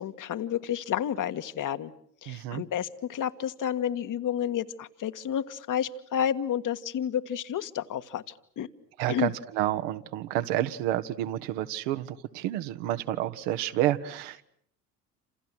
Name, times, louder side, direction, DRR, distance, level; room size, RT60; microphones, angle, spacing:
voice 1, 0.0-1.9 2.2-8.2 8.6-8.7 9.1-9.3, left 9 dB, 40° left, 10 dB, 1.6 m, -30 dB
voice 2, 2.3-2.6 9.0-14.5, right 13 dB, 60° right, 9 dB, 1.7 m, -29 dB
29.0 x 28.0 x 6.2 m, 0.67 s
figure-of-eight pair, 65°, 48 cm